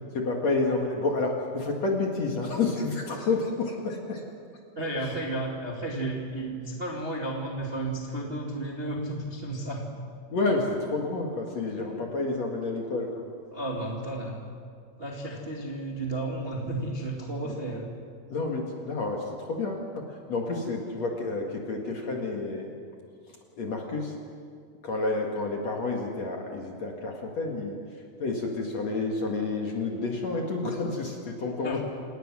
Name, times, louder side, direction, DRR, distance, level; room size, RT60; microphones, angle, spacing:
voice 1, 0.1-4.2 5.0-5.1 10.3-13.2 17.4-17.5 18.3-22.8 23.3-24.2 24.8-31.8, left 3 dB, 50° left, 0 dB, 2.4 m, -30 dB
voice 2, 4.7-10.0 11.8-11.9 13.5-14.5 15.0-17.9 31.6-31.8, right 2 dB, 25° right, -2 dB, 1.3 m, -33 dB
29.0 x 18.5 x 6.3 m, 2.2 s
omnidirectional pair, 5.0 m